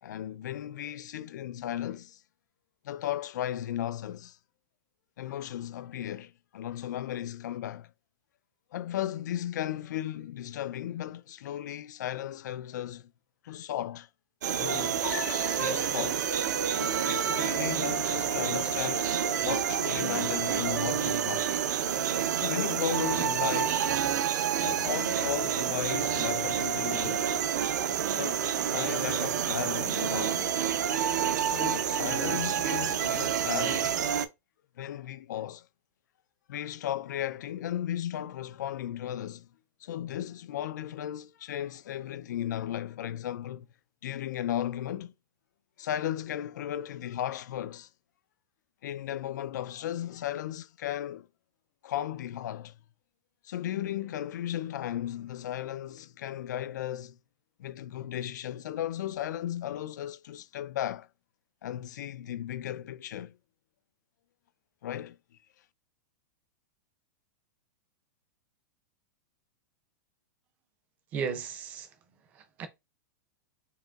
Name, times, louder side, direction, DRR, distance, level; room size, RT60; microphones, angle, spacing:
voice 1, 0.0-2.2 2.8-4.4 5.2-7.9 8.7-13.1 13.4-14.1 14.5-15.0 15.6-16.3 16.7-19.1 19.4-21.5 22.3-24.0 24.6-27.3 28.2-30.6 31.4-34.1 34.8-35.7 36.5-39.5 39.8-43.7 44.0-45.1 45.8-47.9 48.8-51.3 51.8-52.8 53.4-57.2 57.6-61.1 61.6-63.3 64.8-65.2, left 11 dB, 75° left, 0.4 m, -35 dB
sound 1, 14.4-34.3, right 8 dB, 80° right, 0.5 m, -28 dB
sound 2, 15.0-16.7, left 9 dB, 60° left, 0.8 m, -40 dB
voice 2, 71.1-71.9 72.3-72.7, right 6 dB, 15° right, 0.4 m, -35 dB
4.8 x 2.9 x 2.3 m
supercardioid pair, 175°, 10 cm